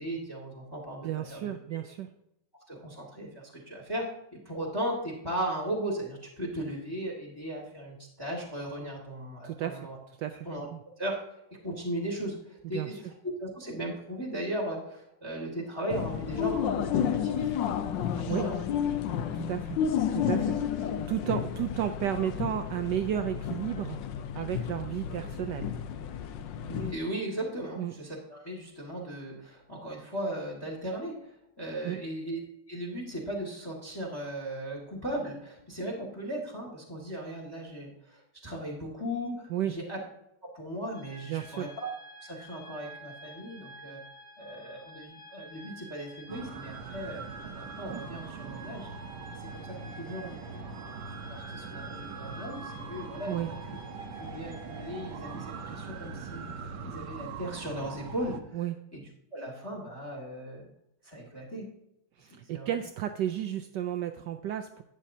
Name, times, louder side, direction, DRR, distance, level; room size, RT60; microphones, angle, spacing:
voice 1, 0.0-1.5 2.7-4.1 4.3-10.0 10.5-10.7 11.0-11.2 11.6-12.9 13.2-16.7 16.9-17.5 18.1-18.7 26.6-31.3 31.6-32.4 32.7-40.0 40.5-41.9 42.2-44.0 44.4-47.3 47.6-48.9 49.4-51.0 51.3-53.8 54.2-58.6 58.9-59.0 59.3-60.7 61.0-61.7 62.5-62.7, right 1 dB, 10° left, -1 dB, 1.6 m, -37 dB
voice 2, 1.0-2.1 9.4-9.9 10.2-10.8 12.7-13.0 18.3-18.5 19.2-19.8 20.1-24.0 24.3-25.7 27.8-27.9 31.8-32.0 39.5-39.7 41.3-41.7 53.3-53.5 58.5-58.8 62.2-64.8, right 11 dB, 80° right, 7 dB, 0.9 m, -33 dB
sound 1, 15.9-26.9, left 8 dB, 70° left, 1.2 m, -31 dB
sound 2, 40.9-56.5, equal, 90° left, 3.6 m, -50 dB
sound 3, 46.3-58.4, right 5 dB, 65° right, 1.3 m, -41 dB
11.5 x 8.9 x 2.7 m, 0.82 s
omnidirectional pair, 2.4 m